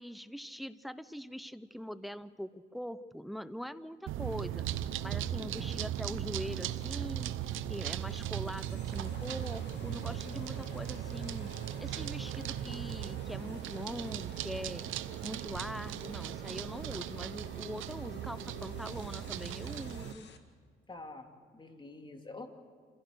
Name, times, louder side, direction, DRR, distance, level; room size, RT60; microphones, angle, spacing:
voice 1, 0.0-4.7 5.0-7.3 7.7-11.5 11.8-14.9 15.2-20.3, equal, ahead, 14 dB, 0.8 m, -42 dB
sound 1, 4.1-20.1, right 12 dB, 85° right, 0.8 m, -38 dB
sound 2, 6.1-20.4, left 6 dB, 60° left, 2.1 m, -54 dB
voice 2, 20.9-21.3 21.5-22.5, left 2 dB, 25° left, 4 dB, 2.9 m, -47 dB
28.0 x 16.0 x 6.5 m, 2.1 s
cardioid pair, 90°, 20 cm